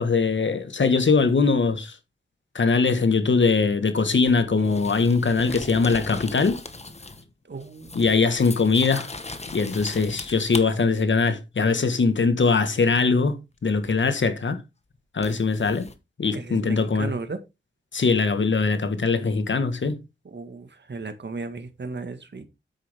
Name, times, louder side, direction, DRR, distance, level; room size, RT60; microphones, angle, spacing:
voice 1, 0.0-2.0 2.5-6.6 7.9-9.1 9.5-13.4 13.6-14.6 15.1-15.9 16.2-17.1 17.9-20.0, left 4 dB, 65° left, 1.6 m, -21 dB
sound 1, 4.2-7.3 7.6-10.6 13.8-14.0 15.2-15.9, left 2 dB, 30° left, 1.4 m, -38 dB
voice 2, 7.5-8.0 16.3-17.4 20.3-22.5, right 3 dB, 60° right, 1.8 m, -35 dB
9.6 x 8.2 x 3.6 m
wide cardioid pair, 70°, 21 cm